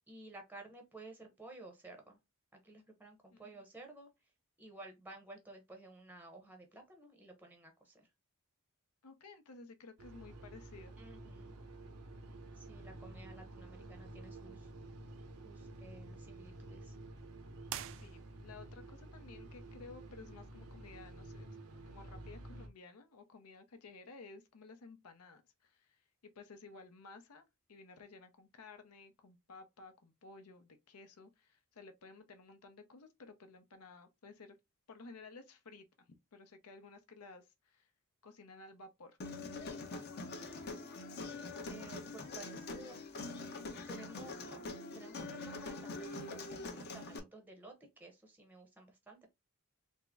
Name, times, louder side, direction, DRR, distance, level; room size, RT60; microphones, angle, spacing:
voice 1, 0.1-2.2 2.6-4.1 4.6-8.1 11.0-11.5 12.5-14.7 15.4-17.0 41.7-43.6 43.9-49.3, right 2 dB, 10° right, 0.6 m, -54 dB
voice 2, 9.0-10.9 17.8-21.5 21.9-26.0 26.4-34.6 34.9-36.1 36.3-37.9 38.2-40.9, left 3 dB, 85° left, 0.6 m, -55 dB
sound 1, 10.0-22.7, right 2 dB, 80° right, 0.7 m, -51 dB
sound 2, 17.6-18.7, right 11 dB, 60° right, 0.3 m, -45 dB
Human voice, 39.2-47.2, left 3 dB, 50° left, 0.7 m, -44 dB
3.5 x 2.0 x 3.4 m
head